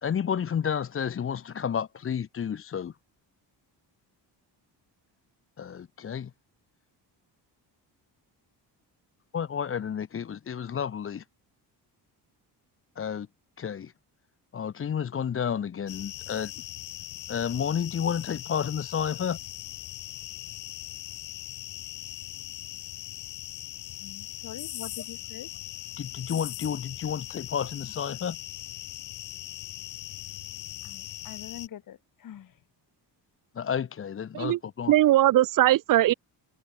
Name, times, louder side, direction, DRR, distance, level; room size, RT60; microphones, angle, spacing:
voice 1, 0.0-2.9 5.6-6.3 9.3-11.2 13.0-13.3 13.6-13.9 14.5-16.6 17.3-19.4 26.0-28.4 33.5-34.9, left 8 dB, 30° left, 0.9 m, -31 dB
sound 1, 15.9-31.7, left 14 dB, 80° left, 2.4 m, -40 dB
voice 2, 24.0-25.5 30.8-32.5, left 10 dB, 50° left, 1.7 m, -44 dB
voice 3, 34.9-36.1, right 14 dB, 50° right, 0.6 m, -20 dB
cardioid pair, 180°, 43 cm